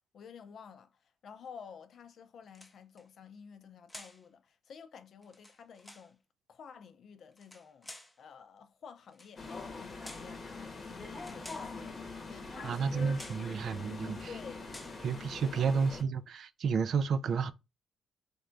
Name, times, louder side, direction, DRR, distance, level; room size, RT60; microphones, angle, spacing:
voice 1, 0.1-6.2 6.5-7.9 8.2-11.9 12.3-13.1 13.6-13.8 14.3-14.7 15.5-15.9, left 6 dB, 60° left, 0.5 m, -52 dB
sound 1, 2.5-3.0 3.9-4.2 5.2-6.1 7.3-8.2 9.1-9.4 10.0-10.4 11.2-11.8 12.6-12.9 13.1-13.5 14.1-14.3 14.7-15.0, left 1 dB, 10° left, 0.6 m, -51 dB
sound 2, 9.4-16.0, left 3 dB, 35° left, 0.9 m, -43 dB
sound 3, 10.9-16.3, right 3 dB, 45° right, 0.8 m, -59 dB
voice 2, 12.6-14.3 15.0-17.5, right 5 dB, 60° right, 0.3 m, -31 dB
3.4 x 2.2 x 3.8 m
cardioid pair, 90°, 0 cm